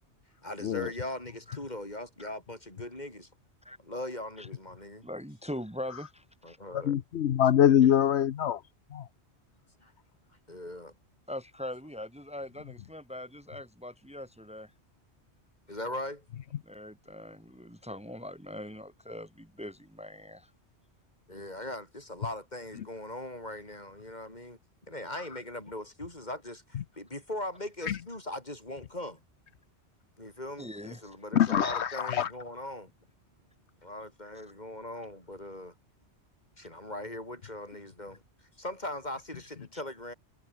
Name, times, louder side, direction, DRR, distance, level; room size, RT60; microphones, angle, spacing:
voice 1, 0.4-3.3 3.8-5.1 6.4-7.0 7.8-7.9 9.8-9.9 10.5-10.9 15.7-16.2 21.3-24.6 24.9-29.2 30.2-32.9 33.8-35.7 36.6-38.2 38.6-40.1, left 1 dB, 40° left, 5.5 m, -40 dB
voice 2, 5.0-6.6 11.3-14.7 16.7-20.5 30.6-31.2, left 1 dB, 5° right, 2.3 m, -41 dB
voice 3, 6.7-8.6 8.9-9.1 27.9-28.0 31.3-32.3, left 10 dB, 75° left, 1.0 m, -24 dB
omnidirectional pair, 1.1 m